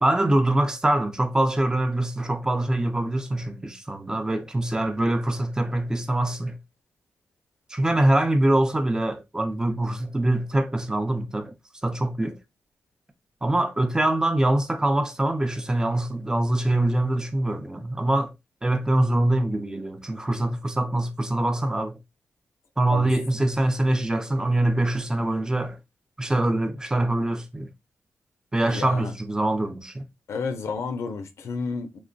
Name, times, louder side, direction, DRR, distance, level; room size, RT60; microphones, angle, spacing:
voice 1, 0.0-6.6 7.7-11.5 11.8-12.4 13.4-18.3 18.6-22.0 22.8-25.8 26.2-27.7 28.5-30.0, right 1 dB, 15° right, 0.5 m, -24 dB
voice 2, 28.7-29.1 30.3-32.0, left 4 dB, 75° left, 0.4 m, -31 dB
3.0 x 2.2 x 2.5 m
cardioid pair, 75°, 5 cm